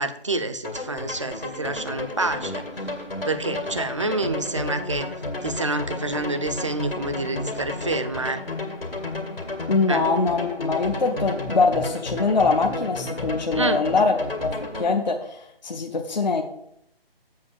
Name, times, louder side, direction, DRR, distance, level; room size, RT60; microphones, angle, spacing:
voice 1, 0.0-2.6 3.3-5.1 5.4-8.4 9.9-10.0 13.5-13.8, right 2 dB, 30° right, 10 dB, 0.5 m, -28 dB
sound 1, 0.6-14.9, left 2 dB, 70° left, 2.1 m, -32 dB
voice 2, 9.7-14.1 14.4-14.5 14.7-16.4, left 4 dB, 45° left, 3 dB, 0.8 m, -23 dB
7.6 x 6.6 x 6.4 m, 0.74 s
figure-of-eight pair, 155°, 30 cm